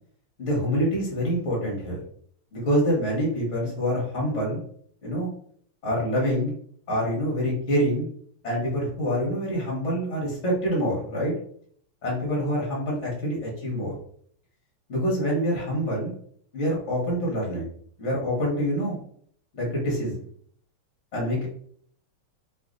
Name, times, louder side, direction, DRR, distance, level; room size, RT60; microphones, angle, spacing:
voice 1, 0.4-2.0 2.5-4.6 5.0-5.3 5.8-6.5 6.9-8.1 8.4-11.3 12.0-13.9 14.9-16.1 16.5-17.7 18.0-19.0 19.5-20.1 21.1-21.5, equal, 35° left, -3 dB, 1.7 m, -26 dB
3.4 x 3.1 x 3.9 m, 0.62 s
omnidirectional pair, 2.2 m